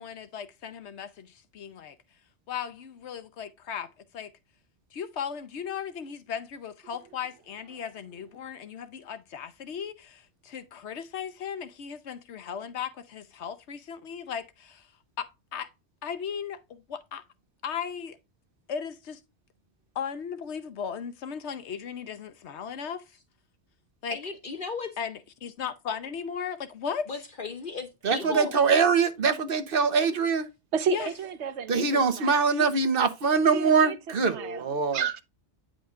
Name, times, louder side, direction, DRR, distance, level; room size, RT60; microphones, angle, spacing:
voice 1, 0.0-1.9 2.5-4.3 4.9-14.8 15.2-15.7 16.0-17.2 17.6-18.2 18.7-19.2 19.9-23.0 24.0-24.2 25.0-27.1 28.2-28.4 30.9-31.1, left 7 dB, 80° left, 1.1 m, -36 dB
voice 2, 24.1-24.9 27.1-28.5, left 4 dB, 50° left, 1.0 m, -35 dB
voice 3, 28.0-30.5 31.7-35.0, right 5 dB, 55° right, 1.1 m, -23 dB
voice 4, 30.7-32.7 33.5-34.0 34.3-34.6 34.9-35.2, right 7 dB, 80° right, 1.0 m, -32 dB
9.3 x 5.1 x 2.4 m
omnidirectional pair, 1.1 m